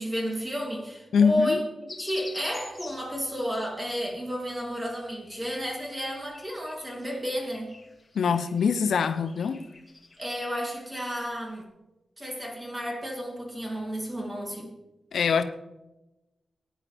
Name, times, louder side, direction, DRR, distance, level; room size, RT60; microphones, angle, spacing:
voice 1, 0.0-1.6 2.0-7.7 10.2-11.7 12.2-14.7, equal, 15° right, 0 dB, 3.1 m, -32 dB
voice 2, 1.1-1.6 8.1-9.6 15.1-15.4, left 6 dB, 80° left, 10 dB, 0.7 m, -23 dB
sound 1, 1.9-11.6, left 2 dB, 25° left, 2.0 m, -49 dB
18.0 x 9.8 x 3.5 m, 1.0 s
wide cardioid pair, 105°, 0 cm